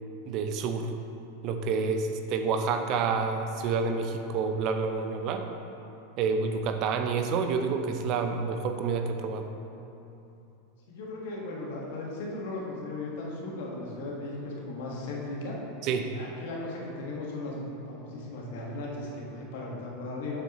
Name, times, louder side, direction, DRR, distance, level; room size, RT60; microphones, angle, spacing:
voice 1, 0.3-0.9 1.4-5.5 6.2-9.5 15.8-16.1, right 5 dB, 50° right, 6 dB, 0.6 m, -28 dB
voice 2, 10.9-15.6 15.9-20.4, left 2 dB, 70° left, -3 dB, 1.5 m, -37 dB
7.6 x 6.4 x 3.1 m, 2.9 s
hypercardioid pair, 105°, 0 cm